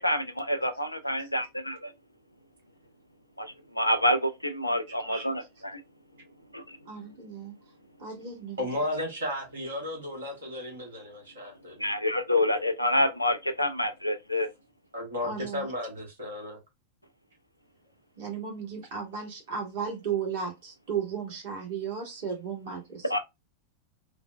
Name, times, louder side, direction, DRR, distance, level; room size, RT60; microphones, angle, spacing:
voice 1, 0.0-1.9 3.4-5.8 6.5-6.8 11.8-14.5 23.0-23.2, left 1 dB, 85° left, 0.4 m, -27 dB
voice 2, 5.1-5.5 6.8-7.5 8.0-8.7 15.2-15.7 18.2-23.1, right 6 dB, 55° right, 1.5 m, -35 dB
voice 3, 8.6-11.9 14.9-16.6, left 1 dB, 70° right, 1.4 m, -34 dB
3.2 x 2.1 x 2.3 m
figure-of-eight pair, 90°, 0 cm